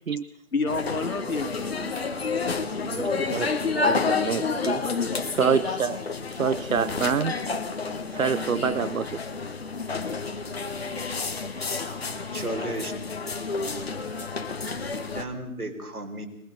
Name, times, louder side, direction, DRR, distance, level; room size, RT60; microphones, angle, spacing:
voice 1, 0.5-4.0 4.4-4.5 4.8-5.1, left 4 dB, 70° left, 6 dB, 2.9 m, -32 dB
sound 1, 0.7-15.2, left 4 dB, 45° left, 1.9 m, -30 dB
voice 2, 2.9-4.8 5.4-6.0 6.3-7.4 8.1-9.2, right 6 dB, 65° right, 16 dB, 0.8 m, -27 dB
voice 3, 12.3-12.9 14.9-16.3, right 2 dB, 80° right, 5 dB, 4.8 m, -34 dB
22.0 x 20.5 x 6.7 m, 0.73 s
figure-of-eight pair, 165°, 44 cm